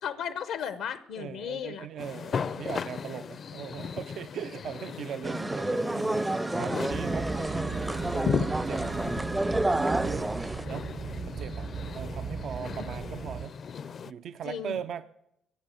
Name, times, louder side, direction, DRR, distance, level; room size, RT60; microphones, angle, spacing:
voice 1, 0.0-1.9 12.7-12.8 14.4-14.8, left 8 dB, 85° left, 13 dB, 0.7 m, -35 dB
voice 2, 1.2-9.3 9.6-10.4 10.7-10.9 11.3-13.5 14.0-15.1, right 8 dB, 70° right, 12 dB, 0.5 m, -40 dB
sound 1, 2.0-14.1, left 6 dB, 50° left, 0.5 m, -37 dB
sound 2, 5.2-10.6, right 2 dB, 15° right, 0.5 m, -29 dB
sound 3, 6.9-13.5, right 5 dB, 50° right, 0.9 m, -37 dB
15.5 x 8.8 x 8.2 m, 0.82 s
cardioid pair, 90°, 0 cm